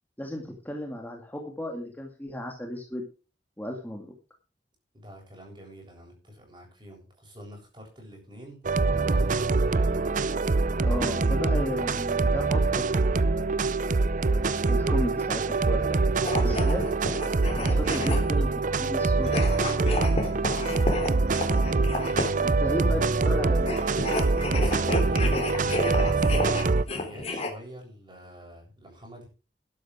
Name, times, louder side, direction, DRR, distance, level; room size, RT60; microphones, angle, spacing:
voice 1, 0.2-3.1 3.6-4.2 10.8-13.5 14.7-16.0 16.3-16.8 17.6-19.4 22.4-23.8, left 1 dB, 10° left, 1 dB, 2.2 m, -34 dB
voice 2, 4.9-8.6 9.1-10.1 20.0-20.4 21.8-22.6 22.9-23.3 24.5-29.3, equal, 25° right, 1 dB, 7.8 m, -46 dB
sound 1, 8.6-26.8, right 3 dB, 45° right, 0.6 m, -24 dB
sound 2, 16.1-18.5 19.2-22.5 23.6-27.5, left 2 dB, 35° left, 3.4 m, -32 dB
12.5 x 12.0 x 4.9 m, 0.34 s
head